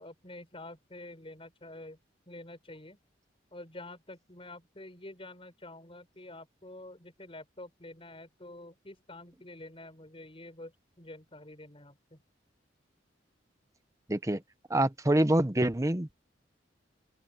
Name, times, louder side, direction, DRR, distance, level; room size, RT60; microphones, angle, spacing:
voice 1, 0.0-2.0 2.3-3.0 3.5-12.2, left 2 dB, 30° left, 6.3 m, -48 dB
voice 2, 14.1-14.4 14.7-16.1, right 1 dB, 15° right, 1.0 m, -26 dB
open air
head